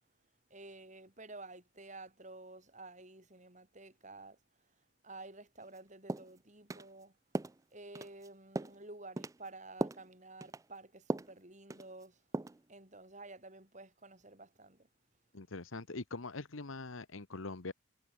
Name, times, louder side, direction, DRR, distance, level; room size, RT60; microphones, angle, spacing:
voice 1, 0.5-7.2 7.7-12.3 12.7-14.9, right 2 dB, 35° right, 5.4 m, -52 dB
sound 1, 5.6-5.8 6.1-6.3 6.7-6.9 7.3-7.6 7.9-8.3 8.5-8.8 9.2-9.4 9.8-10.1 10.4-10.6 11.1-11.4 11.7-12.0 12.3-12.6, right 2 dB, 15° right, 0.4 m, -38 dB
voice 2, 15.3-17.7, left 3 dB, 85° left, 1.3 m, -43 dB
head